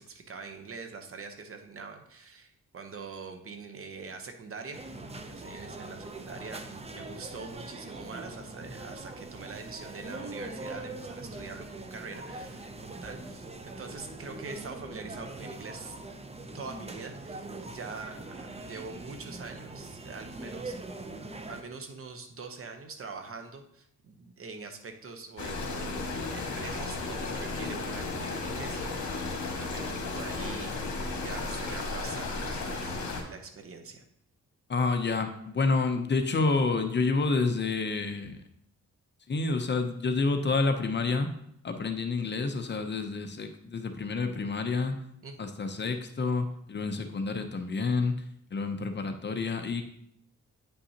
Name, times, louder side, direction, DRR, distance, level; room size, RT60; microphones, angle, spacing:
voice 1, 0.0-16.0 16.5-20.7 21.1-30.9 31.2-34.0 38.2-38.3 45.2-45.5, right 4 dB, 50° right, 6 dB, 0.9 m, -44 dB
sound 1, 4.7-21.6, right 2 dB, 20° right, 0.6 m, -42 dB
sound 2, 25.4-33.2, left 3 dB, 65° left, 1.6 m, -34 dB
voice 2, 34.7-38.4 39.3-41.3 41.6-44.9 45.4-48.1 48.5-49.8, left 3 dB, 35° left, 6 dB, 0.7 m, -29 dB
8.9 x 5.5 x 2.8 m, 0.73 s
cardioid pair, 115°, 30 cm